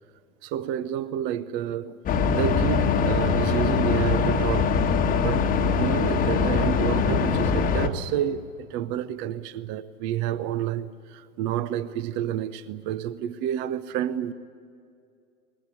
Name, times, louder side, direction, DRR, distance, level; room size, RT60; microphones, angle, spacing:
voice 1, 0.4-2.0 2.3-4.7 5.2-5.4 5.7-14.3, right 10 dB, 25° right, 0.6 m, -29 dB
sound 1, 2.1-7.9, left 5 dB, 20° left, 1.3 m, -22 dB
21.0 x 20.0 x 9.7 m
figure-of-eight pair, 105°, 43 cm